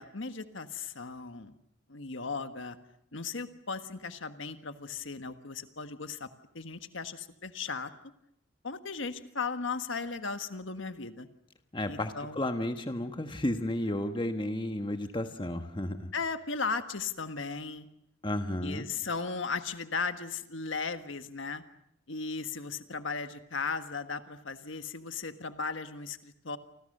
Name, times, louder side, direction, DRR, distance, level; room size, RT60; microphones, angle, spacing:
voice 1, 0.0-1.6 1.9-2.8 3.1-6.3 6.5-7.9 8.6-11.3 11.9-12.4 16.1-17.9 18.6-21.6 22.1-26.6, left 4 dB, 70° left, 9 dB, 1.5 m, -36 dB
voice 2, 11.7-16.1 18.2-18.9, left 1 dB, 25° left, 7 dB, 1.4 m, -32 dB
29.5 x 25.0 x 6.7 m, 0.75 s
head